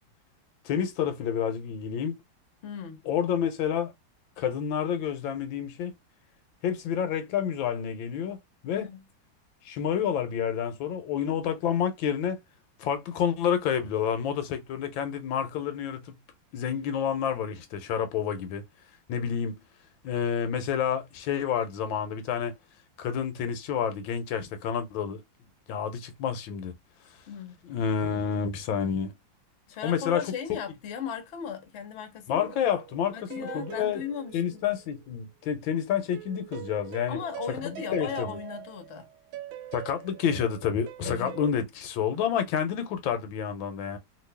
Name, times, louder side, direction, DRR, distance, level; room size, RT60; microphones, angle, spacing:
voice 1, 0.6-2.2 3.1-3.9 4.4-5.9 6.6-8.4 8.6-8.9 9.6-12.4 12.8-16.2 16.5-18.6 19.1-19.6 20.0-22.5 23.0-25.2 25.7-26.7 27.7-29.1 29.8-30.3 32.3-34.0 34.3-37.2 37.9-38.4 39.7-44.0, left 8 dB, 80° left, 1.4 m, -29 dB
voice 2, 2.6-3.0 8.7-9.0 27.3-27.6 29.7-32.5 33.1-34.6 37.1-39.1 41.0-41.4, left 7 dB, 50° left, 0.9 m, -37 dB
sound 1, 32.3-35.2 36.1-41.5, right 13 dB, 85° right, 1.4 m, -43 dB
3.0 x 2.7 x 3.3 m
omnidirectional pair, 2.1 m